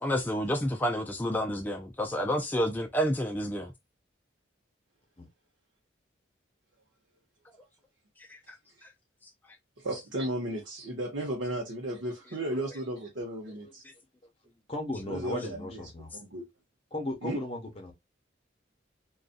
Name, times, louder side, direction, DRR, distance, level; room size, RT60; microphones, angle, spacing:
voice 1, 0.0-3.7, equal, 10° left, 0.3 m, -29 dB
voice 2, 9.8-13.8 15.1-15.8 16.2-16.4 17.2-17.4, right 1 dB, 75° right, 0.8 m, -34 dB
voice 3, 14.7-16.1 16.9-17.9, left 1 dB, 30° left, 0.8 m, -36 dB
2.5 x 2.3 x 2.4 m
head